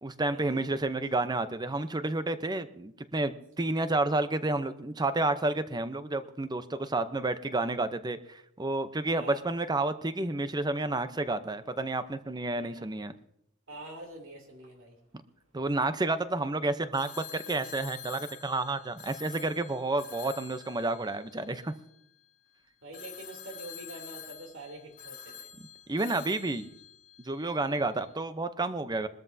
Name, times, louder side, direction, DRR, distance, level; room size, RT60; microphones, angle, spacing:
voice 1, 0.0-13.1 15.5-21.7 25.9-26.7 27.2-29.1, right 2 dB, 20° right, 11 dB, 0.7 m, -30 dB
voice 2, 9.1-9.4 12.5-12.9 13.7-15.0 22.8-25.5, right 1 dB, 65° right, 0 dB, 3.1 m, -45 dB
Telephone, 16.9-22.2 22.9-27.8, left 8 dB, 40° left, 1.6 m, -48 dB
22.0 x 13.0 x 2.7 m, 0.74 s
head